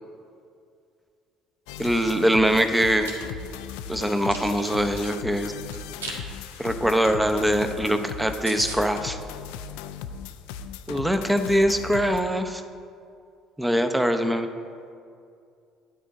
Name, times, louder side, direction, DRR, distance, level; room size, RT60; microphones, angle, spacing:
sound 1, 1.7-12.2, left 7 dB, 65° left, 0.4 m, -37 dB
voice 1, 1.8-3.1 3.9-5.5 6.6-9.2 10.9-12.6 13.6-14.5, equal, 5° right, 8 dB, 0.7 m, -23 dB
Chewing mastication, 2.8-3.1 3.6-5.1 5.7-6.2 6.5-6.7 7.1-7.2 7.4-7.5 7.9-8.0 8.2-8.3 8.4-8.8, right 3 dB, 75° right, 1.0 m, -37 dB
10.0 x 4.5 x 7.6 m, 2.4 s
figure-of-eight pair, 55°, 0 cm